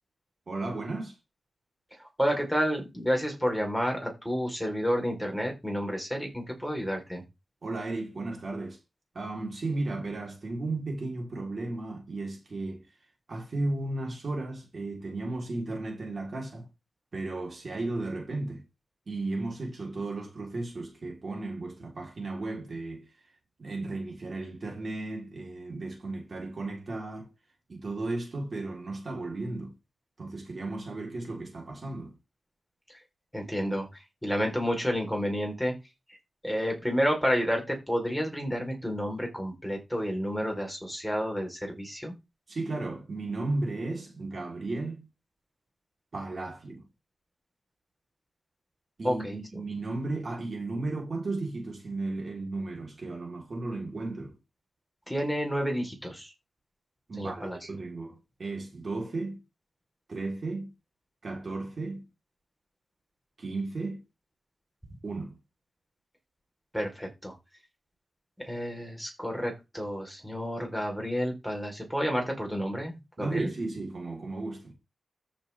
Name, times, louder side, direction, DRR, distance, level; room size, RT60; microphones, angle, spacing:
voice 1, 0.5-1.2 7.6-8.8 9.1-12.9 13.3-16.7 17.1-18.6 19.1-23.0 23.6-27.3 27.7-29.7 30.2-32.1 42.5-45.1 46.1-46.8 49.0-54.4 57.1-59.4 60.1-60.7 61.2-62.1 63.4-64.0 65.0-65.3 73.2-74.7, right 2 dB, 45° right, 3.8 m, -34 dB
voice 2, 2.0-7.2 32.9-33.0 33.3-35.7 36.4-42.1 49.0-49.4 55.1-56.3 57.2-57.6 66.7-67.4 68.4-73.5, equal, ahead, 4.1 m, -30 dB
14.0 x 7.1 x 3.5 m
wide cardioid pair, 125°, 0 cm